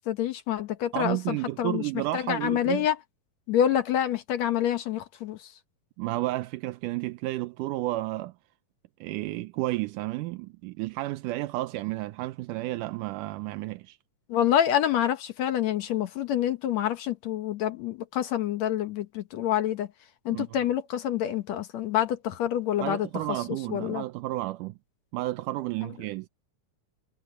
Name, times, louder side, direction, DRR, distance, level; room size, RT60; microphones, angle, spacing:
voice 1, 0.1-1.8 2.1-3.0 3.5-5.5 14.3-19.9 20.3-23.1 23.7-24.0, left 10 dB, 65° left, 2.0 m, -27 dB
voice 2, 0.9-2.9 6.0-8.3 9.0-14.0 20.3-20.7 22.8-24.8 25.1-26.3, right 18 dB, 80° right, 2.2 m, -32 dB
omnidirectional pair, 3.8 m